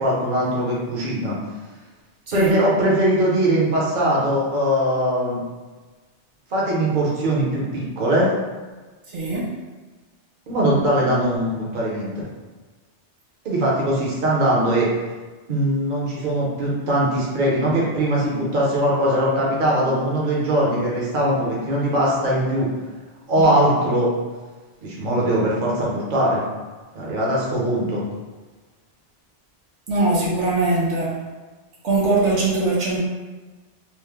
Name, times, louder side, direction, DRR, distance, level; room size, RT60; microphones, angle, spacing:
voice 1, 0.0-1.4 2.3-5.4 6.5-8.3 10.5-12.1 13.4-14.9 15.5-22.7 23.3-24.1 24.8-26.4 26.9-28.0, right 1 dB, 50° right, -5 dB, 0.9 m, -21 dB
voice 2, 9.1-9.5 23.4-23.5 29.9-31.2 31.8-33.0, right 2 dB, 85° right, -5 dB, 1.1 m, -21 dB
3.0 x 2.1 x 3.5 m, 1.3 s
omnidirectional pair, 1.2 m